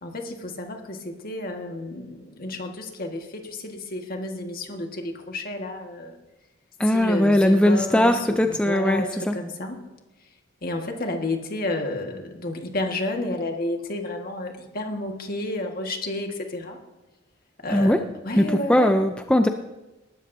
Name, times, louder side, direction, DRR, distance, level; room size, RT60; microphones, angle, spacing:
voice 1, 0.0-6.2 6.9-9.8 10.6-16.8 17.6-18.0 18.2-18.9, left 2 dB, 50° left, 3 dB, 1.7 m, -31 dB
voice 2, 6.8-9.4 17.7-18.0 18.4-19.5, left 1 dB, 5° left, 6 dB, 0.5 m, -20 dB
19.0 x 13.0 x 2.7 m, 1.0 s
head